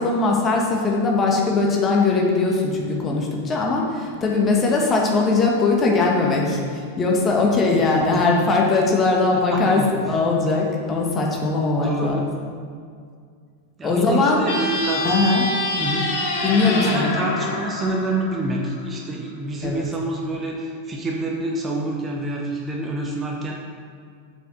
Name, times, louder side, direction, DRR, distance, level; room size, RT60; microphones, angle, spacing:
voice 1, 0.0-9.8 10.1-12.2 13.8-14.4 15.0-15.4 16.4-17.1 19.6-19.8, left 3 dB, 25° left, -1 dB, 1.7 m, -20 dB
voice 2, 7.7-8.2 9.3-10.2 11.8-12.3 13.8-15.2 15.8-16.1 16.6-23.6, right 2 dB, 20° right, 0 dB, 1.1 m, -27 dB
sound 1, 14.4-18.9, left 1 dB, 50° left, 1.5 m, -26 dB
7.9 x 6.2 x 6.6 m, 2.1 s
figure-of-eight pair, 90°, 0 cm